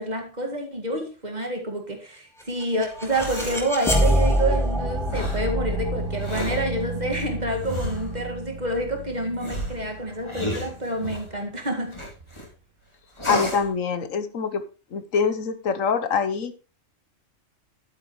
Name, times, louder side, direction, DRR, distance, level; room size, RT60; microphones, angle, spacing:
voice 1, 0.0-12.0, right 1 dB, 35° right, 2.2 m, -28 dB
sound 1, 2.4-11.3, equal, ahead, 2.8 m, -27 dB
sound 2, 2.9-3.7 5.1-5.5 6.1-6.7 7.6-8.2 9.4-11.3 11.9-12.5 13.2-13.7, left 1 dB, 20° left, 2.9 m, -32 dB
voice 2, 13.3-14.6 14.9-16.5, left 6 dB, 85° left, 1.4 m, -25 dB
11.0 x 9.0 x 3.1 m
omnidirectional pair, 1.3 m